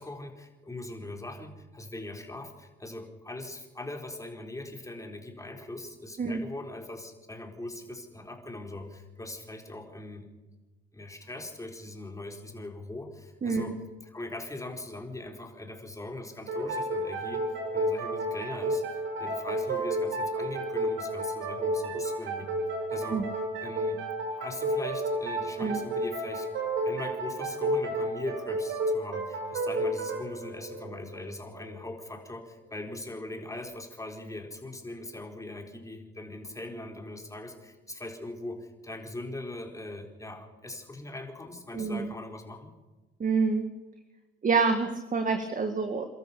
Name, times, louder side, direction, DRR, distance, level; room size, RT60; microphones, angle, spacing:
voice 1, 0.0-10.3 10.9-13.8 14.0-22.6 22.9-23.3 23.6-24.0 24.4-26.5 26.8-42.7, left 2 dB, 15° left, 3 dB, 4.2 m, -41 dB
voice 2, 13.4-13.7 23.1-23.2 25.6-25.8 41.7-42.1 43.2-43.6 44.4-46.1, right 4 dB, 40° right, 6 dB, 2.0 m, -27 dB
sound 1, 16.5-31.8, right 1 dB, 75° right, 6.2 m, -31 dB
29.5 x 13.5 x 7.0 m, 1.2 s
cardioid pair, 90°, 20 cm